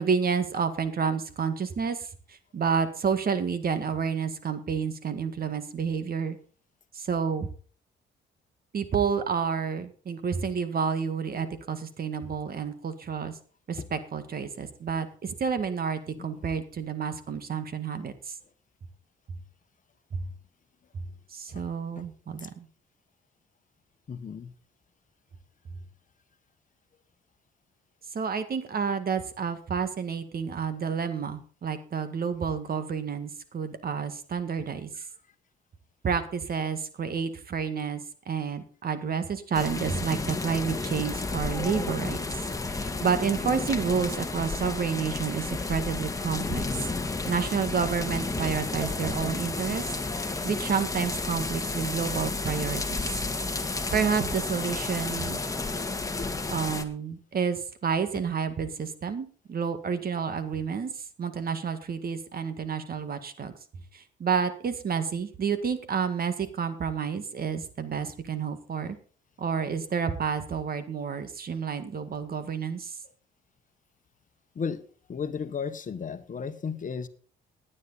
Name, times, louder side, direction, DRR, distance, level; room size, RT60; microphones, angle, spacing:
voice 1, 0.0-6.4 6.9-7.5 8.7-13.4 13.7-18.4 20.1-20.2 20.9-21.0 21.3-22.7 28.1-34.9 36.0-42.2 42.7-46.9 47.3-53.2 53.9-55.4 56.5-63.5 63.9-69.0 69.4-73.0, right 6 dB, 50° right, 10 dB, 1.9 m, -30 dB
voice 2, 24.1-24.5 74.5-74.8 75.1-77.1, left 6 dB, 40° left, 10 dB, 1.3 m, -34 dB
sound 1, 39.5-56.8, left 3 dB, 15° left, 1.8 m, -32 dB
17.0 x 9.9 x 4.1 m, 0.43 s
cardioid pair, 90°, 20 cm